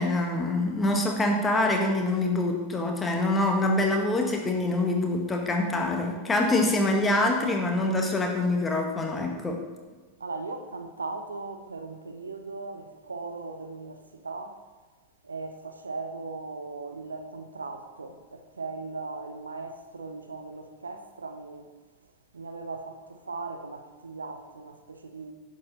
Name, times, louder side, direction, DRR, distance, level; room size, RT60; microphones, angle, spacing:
voice 1, 0.0-9.6, left 2 dB, 15° left, 1.5 m, -25 dB
voice 2, 10.2-14.6 15.2-21.7 22.3-25.3, right 3 dB, 75° right, 0.7 m, -38 dB
10.5 x 7.4 x 4.1 m
figure-of-eight pair, 90°, 0 cm